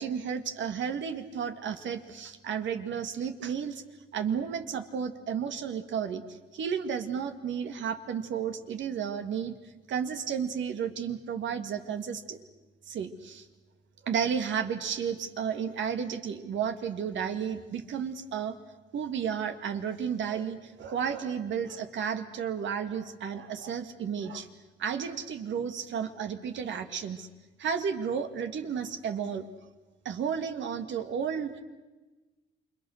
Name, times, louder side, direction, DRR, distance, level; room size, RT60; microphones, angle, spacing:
voice 1, 0.0-3.8 4.1-9.6 9.9-12.5 12.8-13.5 14.0-18.6 18.9-24.5 24.8-27.3 27.6-29.5 30.1-31.6, right 7 dB, 70° right, 7 dB, 2.1 m, -32 dB
28.5 x 24.0 x 6.6 m, 1.2 s
cardioid pair, 90°, 20 cm